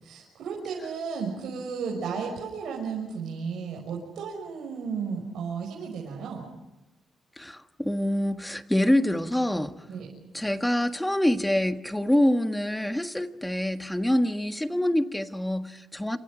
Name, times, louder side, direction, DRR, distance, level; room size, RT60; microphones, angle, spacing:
voice 1, 0.0-6.5 9.9-10.1, right 5 dB, 80° right, -2 dB, 6.1 m, -34 dB
voice 2, 7.4-9.7 10.3-16.2, left 1 dB, 5° left, 8 dB, 1.5 m, -25 dB
29.0 x 28.5 x 5.1 m, 0.98 s
cardioid pair, 125°, 0 cm